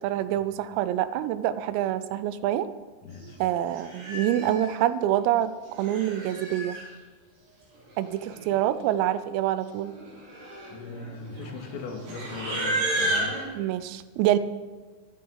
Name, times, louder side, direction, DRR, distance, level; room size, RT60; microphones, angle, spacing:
voice 1, 0.0-2.7 3.4-6.8 8.0-9.9 13.6-14.4, right 12 dB, 90° right, 13 dB, 3.4 m, -26 dB
voice 2, 3.0-3.4 10.7-13.4, left 4 dB, 80° left, 1 dB, 4.7 m, -39 dB
Livestock farm animals working animals, 3.2-3.4 3.7-4.7 5.6-6.9 7.9-8.0 8.2-8.6 8.9-9.2 9.8-13.4, right 1 dB, 55° right, 7.2 m, -32 dB
26.0 x 9.0 x 4.7 m, 1.4 s
omnidirectional pair, 5.9 m